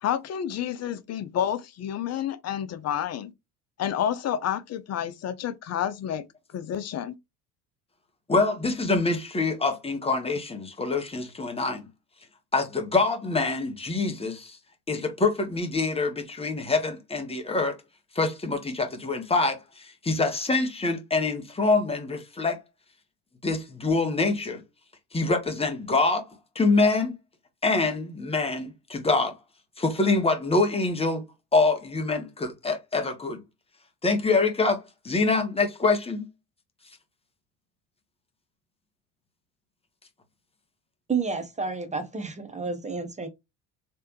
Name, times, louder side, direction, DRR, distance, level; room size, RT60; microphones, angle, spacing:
voice 1, 0.0-3.3 3.8-6.2 6.5-7.1, left 10 dB, 35° left, 0.7 m, -29 dB
voice 2, 8.3-11.9 12.5-14.6 14.9-17.8 18.1-22.6 23.4-24.6 25.1-26.2 26.5-27.1 27.6-29.3 29.8-31.2 31.5-33.4 34.0-36.3, left 3 dB, 10° left, 1.3 m, -25 dB
voice 3, 41.1-43.3, right 4 dB, 15° right, 1.2 m, -30 dB
3.4 x 3.3 x 3.0 m
figure-of-eight pair, 55°, 46 cm